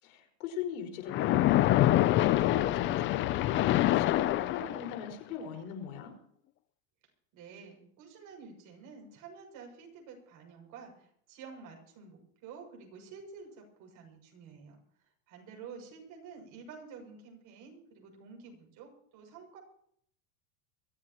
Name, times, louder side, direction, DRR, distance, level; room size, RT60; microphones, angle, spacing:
voice 1, 0.0-6.1, left 8 dB, 70° left, 5 dB, 5.1 m, -40 dB
Splash splatter, 1.1-5.1, left 15 dB, 30° left, 0.5 m, -26 dB
voice 2, 7.3-19.6, right 5 dB, 45° right, 2 dB, 6.9 m, -50 dB
23.5 x 16.0 x 3.0 m, 0.66 s
supercardioid pair, 135°, 43 cm